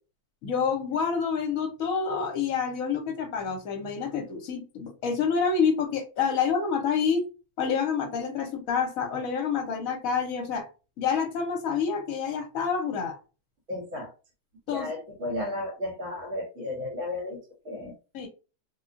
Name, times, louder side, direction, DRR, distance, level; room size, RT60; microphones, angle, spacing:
voice 1, 0.4-7.3 7.6-10.7 11.0-13.2 14.7-14.9 18.1-18.3, left 6 dB, 60° left, 3 dB, 1.1 m, -28 dB
voice 2, 13.7-14.1 14.7-17.9, left 1 dB, 50° right, 0 dB, 1.4 m, -34 dB
2.9 x 2.3 x 2.5 m, 0.32 s
omnidirectional pair, 1.8 m